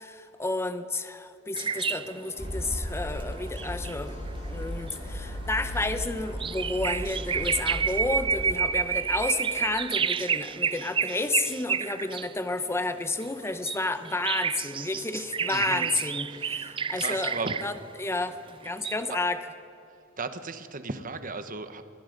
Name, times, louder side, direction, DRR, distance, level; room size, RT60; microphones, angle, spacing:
voice 1, 0.0-4.2 4.5-17.4 17.6-18.4 18.6-19.5, left 2 dB, 15° left, 10 dB, 0.8 m, -31 dB
sound 1, 1.5-12.3 12.9-17.8 18.6-19.1, right 6 dB, 25° right, 0.4 m, -30 dB
sound 2, 2.4-8.5, equal, 35° left, 3.4 m, -36 dB
voice 2, 15.5-15.9 16.3-16.4 16.9-17.6 19.1-19.2 20.2-21.8, right 3 dB, 40° right, 10 dB, 1.1 m, -35 dB
26.0 x 20.0 x 5.3 m, 2.6 s
head